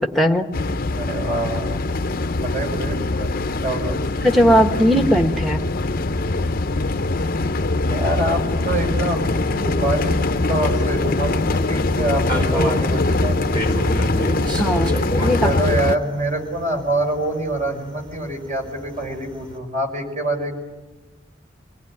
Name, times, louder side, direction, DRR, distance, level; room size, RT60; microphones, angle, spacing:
voice 1, 0.1-0.5 4.2-5.6 14.6-15.5, equal, ahead, 4 dB, 1.5 m, -18 dB
sound 1, 0.5-16.0, left 2 dB, 50° left, 0.8 m, -22 dB
voice 2, 0.9-1.8 2.4-3.3 3.6-4.0 7.8-9.3 9.6-10.2 10.5-13.6 15.4-20.5, right 1 dB, 40° right, 2 dB, 5.4 m, -25 dB
sound 2, 10.9-19.6, right 1 dB, 25° right, 4.2 m, -31 dB
25.5 x 19.5 x 9.7 m, 1.1 s
head